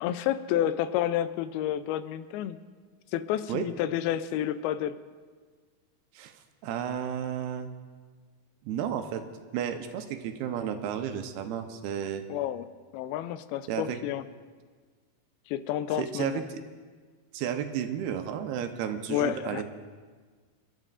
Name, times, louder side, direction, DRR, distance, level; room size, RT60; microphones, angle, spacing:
voice 1, 0.0-2.6 3.1-4.9 12.3-12.7 12.9-14.2 15.5-16.4 19.1-19.6, left 11 dB, 85° left, 13 dB, 2.4 m, -30 dB
voice 2, 6.6-7.7 8.6-9.2 9.5-12.2 13.7-14.0 16.0-16.6 17.3-19.6, right 9 dB, 85° right, 7 dB, 2.7 m, -32 dB
28.5 x 12.0 x 2.5 m, 1.5 s
omnidirectional pair, 4.4 m